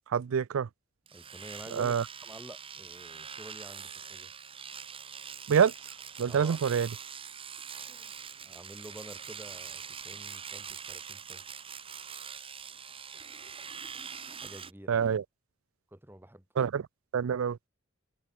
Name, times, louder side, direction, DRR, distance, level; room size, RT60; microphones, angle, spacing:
voice 1, 0.1-0.7 1.7-2.0 5.5-5.7 6.2-6.9 14.9-15.2 16.6-16.8 17.1-17.6, right 7 dB, 75° right, 0.4 m, -26 dB
voice 2, 1.1-2.0 2.2-4.3 6.3-6.6 7.9-8.1 8.4-11.4 14.4-15.0 15.9-16.4, right 1 dB, 10° right, 1.4 m, -49 dB
Domestic sounds home sounds, 1.1-14.7, right 7 dB, 25° right, 1.9 m, -44 dB
head